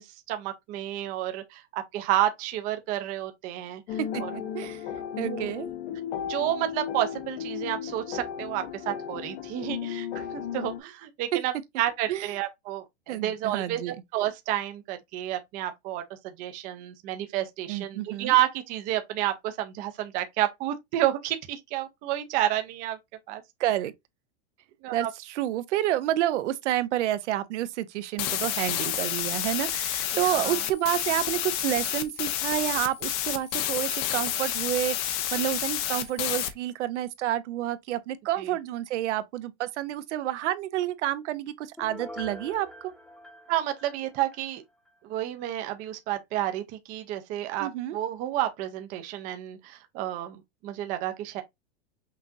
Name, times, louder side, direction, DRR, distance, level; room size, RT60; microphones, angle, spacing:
voice 1, 0.0-4.3 5.2-5.5 6.3-16.0 16.4-23.0 23.3-23.4 24.8-25.1 30.1-30.6 38.4-38.5 43.5-44.6 45.0-51.4, right 13 dB, 25° right, 0.4 m, -30 dB
sound 1, 3.9-10.8, left 9 dB, 65° left, 1.0 m, -35 dB
voice 2, 4.1-4.8 5.2-5.7 12.1-12.3 13.1-14.0 17.7-18.4 23.6-23.9 24.9-42.9 47.6-48.0, right 13 dB, 80° right, 0.7 m, -29 dB
sound 2, 28.2-36.5, left 12 dB, 35° left, 0.5 m, -30 dB
Piano, 41.8-44.5 44.9-45.0, left 1 dB, ahead, 0.8 m, -44 dB
5.7 x 2.5 x 2.5 m
supercardioid pair, 160°, 34 cm